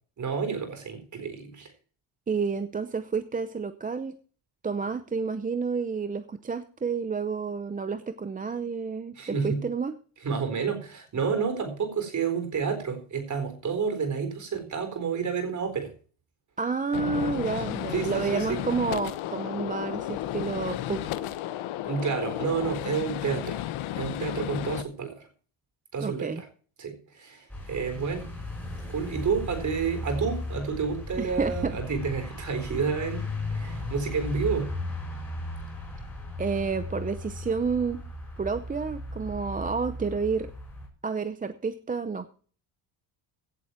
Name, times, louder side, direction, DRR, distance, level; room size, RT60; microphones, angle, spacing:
voice 1, 0.2-1.7 9.1-9.6 10.2-15.9 17.9-18.6 21.9-23.6 24.0-25.3 25.9-26.5 26.8-28.3 28.9-33.3 33.5-34.7, right 5 dB, 35° right, 8 dB, 4.2 m, -30 dB
voice 2, 2.3-4.2 4.6-9.9 16.6-21.1 26.0-26.4 31.2-31.8 36.4-38.0 38.4-40.5 41.0-42.3, right 5 dB, 15° right, 10 dB, 0.6 m, -30 dB
Gunshot gunfire, 16.9-24.8, left 13 dB, 75° left, 1.2 m, -33 dB
sound 1, 27.5-40.9, left 1 dB, 5° left, 5.2 m, -36 dB
17.0 x 7.8 x 4.4 m, 0.41 s
cardioid pair, 160°, 49 cm